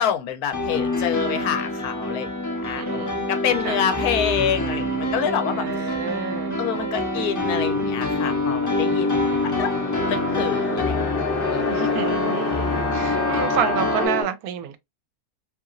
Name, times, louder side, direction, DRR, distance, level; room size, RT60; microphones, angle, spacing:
voice 1, 0.0-5.9 6.6-9.7 10.1-11.1 11.5-11.6, left 9 dB, 80° left, 1.1 m, -27 dB
Piano, 0.5-14.2, left 2 dB, 25° left, 0.4 m, -26 dB
voice 2, 2.7-3.3 3.6-3.8 5.5-6.6 9.1-9.6 11.5-14.8, right 9 dB, 80° right, 1.0 m, -30 dB
sound 1, 8.1-14.1, left 3 dB, 50° left, 0.7 m, -28 dB
2.8 x 2.7 x 2.4 m
omnidirectional pair, 1.6 m